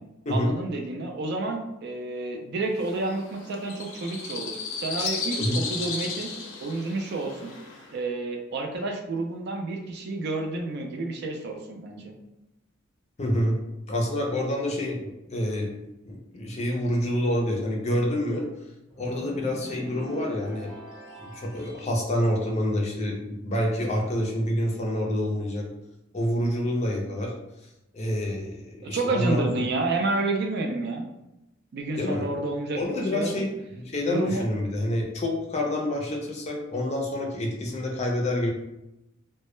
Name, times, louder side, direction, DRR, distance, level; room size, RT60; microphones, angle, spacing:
voice 1, 0.3-6.3 6.6-7.5 7.9-12.1 28.8-31.0 31.7-33.5 34.1-34.5, right 2 dB, 55° right, 2 dB, 0.4 m, -30 dB
sound 1, 2.8-7.9, left 4 dB, 85° left, 0.5 m, -35 dB
voice 2, 13.2-13.6 13.9-15.7 16.0-18.5 19.0-20.7 21.2-25.7 26.1-27.3 27.9-29.4 32.0-32.3 32.8-33.5 33.7-38.5, left 1 dB, 35° left, 0 dB, 0.5 m, -27 dB
sound 2, 18.9-21.9, right 1 dB, 5° right, 0.7 m, -41 dB
2.1 x 2.0 x 3.0 m, 0.92 s
head